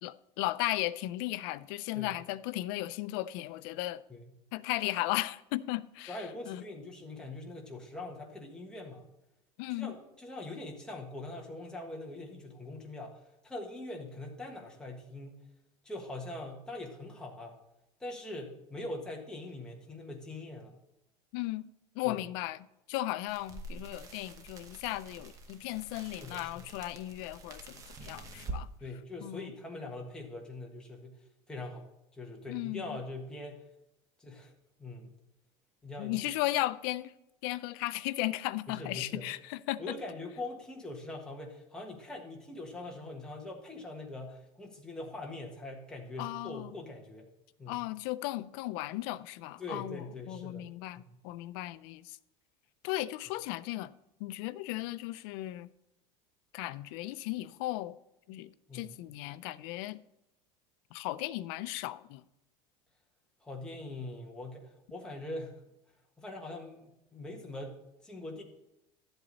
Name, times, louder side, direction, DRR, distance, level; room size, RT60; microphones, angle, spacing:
voice 1, 0.0-4.0 4.5-6.2 6.5-6.6 9.6-10.0 21.3-21.7 21.9-22.6 22.9-28.7 29.2-29.5 32.5-32.8 36.0-37.1 37.4-39.9 46.2-46.7 47.7-52.2 52.8-53.9 54.2-55.7 56.5-57.9 58.3-60.0 60.9-62.2, left 17 dB, 60° left, 0.5 m, -36 dB
voice 2, 6.1-9.0 9.7-15.4 15.8-17.6 18.0-20.8 22.0-22.2 26.2-26.7 28.8-31.9 32.1-33.7 34.2-34.5 34.8-35.2 35.8-36.2 38.7-39.3 39.8-47.3 47.6-47.8 49.6-50.7 50.9-51.0 58.7-59.0 63.4-65.6 66.2-68.4, left 2 dB, 5° left, 1.5 m, -43 dB
sound 1, 23.3-28.6, right 2 dB, 25° right, 1.1 m, -46 dB
12.5 x 8.0 x 4.1 m
cardioid pair, 175°, 14 cm